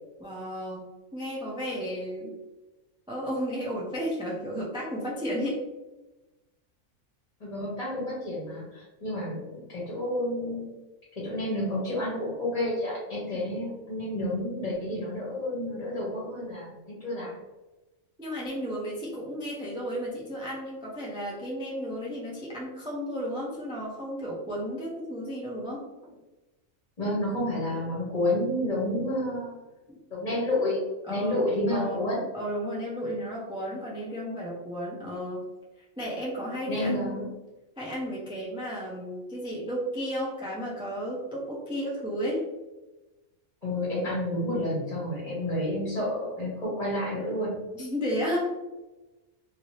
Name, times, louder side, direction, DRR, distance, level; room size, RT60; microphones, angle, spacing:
voice 1, 0.2-0.8 1.1-2.4 3.1-5.6 13.3-13.5 18.2-26.1 29.9-30.0 31.1-31.4 31.7-32.1 32.3-35.5 36.0-37.2 37.8-42.5 47.7-48.5, equal, 5° right, -4 dB, 0.4 m, -33 dB
voice 2, 7.4-10.7 11.2-17.3 27.0-29.6 30.1-30.8 31.1-32.2 36.7-37.3 43.6-47.5, left 1 dB, 35° left, -6 dB, 1.0 m, -30 dB
2.8 x 2.8 x 3.1 m, 1.1 s
omnidirectional pair, 1.4 m